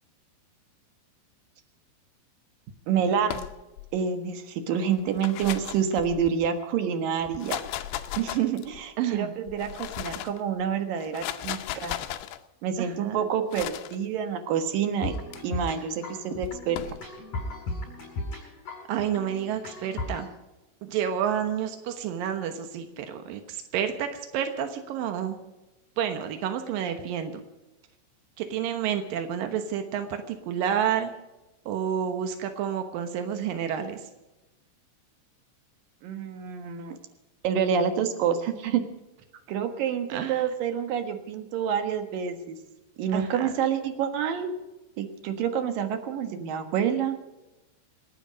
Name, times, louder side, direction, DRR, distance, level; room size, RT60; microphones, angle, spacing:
voice 1, 2.9-3.4 3.9-7.6 8.2-11.9 12.6-15.1 15.4-16.8 36.0-37.0 37.4-38.8 39.5-42.6 43.0-44.5 45.0-47.2, right 7 dB, 65° right, 7 dB, 2.4 m, -28 dB
sound 1, 3.2-3.9 5.0-6.5 7.2-8.8 9.5-10.4 11.0-12.4 13.5-14.0 15.0-15.4 16.4-17.0, left 13 dB, 85° left, 2.3 m, -36 dB
voice 2, 9.0-9.3 12.8-13.2 18.9-20.3 20.8-24.1 24.3-25.4 26.0-27.3 28.4-31.1 31.7-34.0 40.1-40.4 43.1-43.5, right 9 dB, 85° right, 7 dB, 2.0 m, -29 dB
sound 2, 15.0-20.3, left 2 dB, 40° left, 9.0 m, -36 dB
28.0 x 9.9 x 5.1 m, 1.0 s
omnidirectional pair, 5.8 m